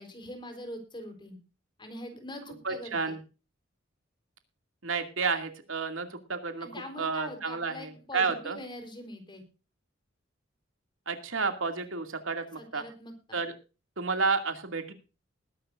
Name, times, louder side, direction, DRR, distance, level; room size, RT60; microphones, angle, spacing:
voice 1, 0.0-1.4 1.8-3.2 6.6-9.4 12.6-13.4, left 1 dB, 25° left, 6 dB, 4.0 m, -43 dB
voice 2, 2.6-3.2 4.8-6.7 7.0-8.6 11.1-12.8 13.3-13.5 14.0-14.9, right 4 dB, 80° right, 6 dB, 2.5 m, -31 dB
20.5 x 11.5 x 2.6 m, 0.33 s
head